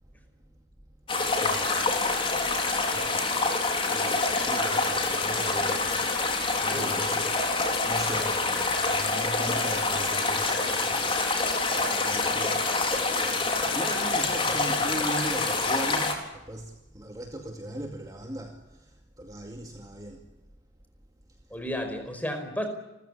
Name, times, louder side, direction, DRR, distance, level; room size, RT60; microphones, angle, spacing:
sound 1, 1.1-16.1, left 3 dB, 30° left, 4.1 m, -26 dB
voice 1, 1.4-2.0 2.9-3.3 3.8-6.1 6.6-7.3 7.6-20.2, right 1 dB, 20° right, 3 dB, 2.3 m, -39 dB
voice 2, 6.6-7.0 21.5-22.7, left 1 dB, 10° left, 6 dB, 4.9 m, -33 dB
29.5 x 15.0 x 9.9 m, 0.99 s
head